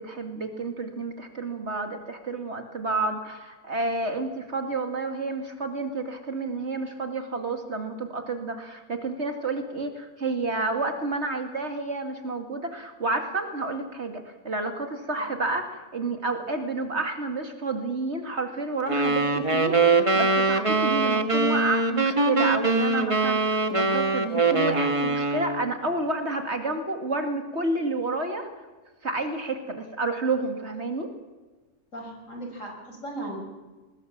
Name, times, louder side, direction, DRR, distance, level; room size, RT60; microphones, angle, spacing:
voice 1, 0.0-28.5 29.0-31.1, right 3 dB, 50° right, 6 dB, 2.4 m, -30 dB
sound 1, 18.9-25.7, right 3 dB, 20° right, 1.4 m, -23 dB
voice 2, 31.9-33.4, right 1 dB, 60° left, 2 dB, 5.9 m, -37 dB
22.5 x 20.5 x 7.3 m, 1.3 s
omnidirectional pair, 1.5 m